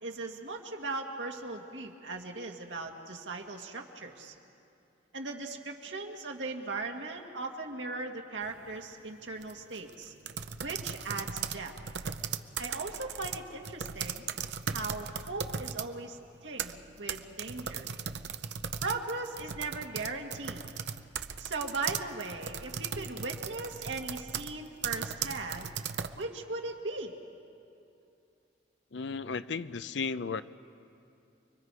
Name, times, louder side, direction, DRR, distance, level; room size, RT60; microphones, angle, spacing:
voice 1, 0.0-4.3 5.1-10.1 10.6-11.7 12.6-14.3 14.7-17.9 18.8-20.6 21.4-25.7 26.2-27.1, right 3 dB, 90° right, 2 dB, 1.9 m, -38 dB
sound 1, 8.4-8.7 9.3-15.9 16.3-26.2, right 7 dB, 65° right, 0.7 m, -37 dB
voice 2, 28.9-30.4, left 5 dB, 75° left, 14 dB, 0.6 m, -34 dB
30.0 x 23.0 x 4.9 m, 2.6 s
head